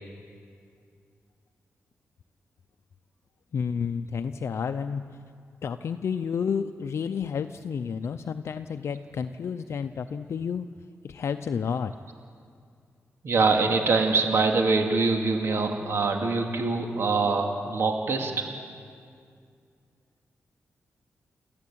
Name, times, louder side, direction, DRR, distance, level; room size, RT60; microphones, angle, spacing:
voice 1, 3.5-5.2 5.6-10.7 11.0-11.9, left 6 dB, 65° left, 9 dB, 0.6 m, -30 dB
voice 2, 13.2-18.5, right 3 dB, 60° right, 3 dB, 2.3 m, -24 dB
28.0 x 13.5 x 8.7 m, 2.3 s
wide cardioid pair, 130°, 5 cm